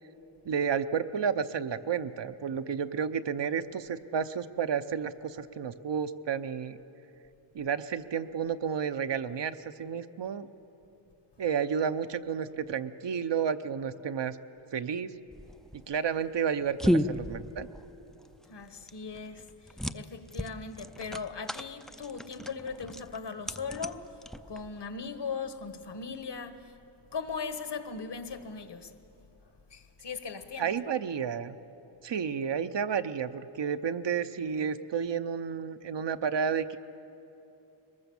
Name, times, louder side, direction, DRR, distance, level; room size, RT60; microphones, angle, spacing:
voice 1, 0.4-6.8 7.5-10.5 11.4-14.4 14.7-15.1 15.7-17.7 30.6-31.6 32.0-36.8, right 7 dB, 60° right, 0.8 m, -31 dB
sound 1, 15.3-24.8, equal, ahead, 0.4 m, -34 dB
voice 2, 18.5-26.8 27.1-28.9 29.7-30.8, left 5 dB, 55° left, 1.4 m, -39 dB
22.5 x 20.0 x 7.2 m
wide cardioid pair, 85°, 49 cm